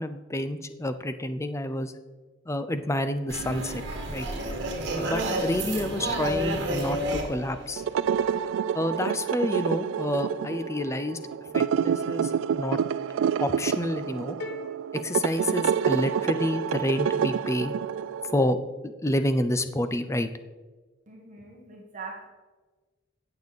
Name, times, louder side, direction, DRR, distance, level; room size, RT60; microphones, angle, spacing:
voice 1, 0.0-1.9 2.5-3.8 4.1-4.3 4.9-7.8 8.7-11.2 11.5-12.8 13.4-14.4 14.9-17.7 18.3-18.6 18.8-20.3, left 1 dB, 15° left, 10 dB, 0.6 m, -29 dB
sound 1, 3.3-8.5, right 1 dB, 60° right, 2.1 m, -30 dB
sound 2, 7.8-18.5, right 7 dB, 80° right, 0.3 m, -28 dB
sound 3, 14.4-16.4, right 1 dB, 60° left, 1.0 m, -41 dB
voice 2, 21.1-22.3, right 4 dB, 40° right, -2 dB, 1.5 m, -42 dB
17.0 x 6.8 x 4.1 m, 1.3 s
head